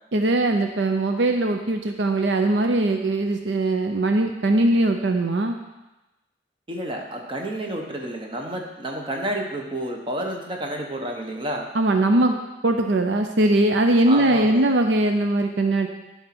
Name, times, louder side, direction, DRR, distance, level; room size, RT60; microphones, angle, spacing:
voice 1, 0.1-5.6 11.7-15.9, right 2 dB, 70° right, 5 dB, 0.6 m, -21 dB
voice 2, 6.7-11.7 14.1-14.7, right 1 dB, 30° right, 1 dB, 1.2 m, -30 dB
11.5 x 4.3 x 6.0 m, 1.0 s
head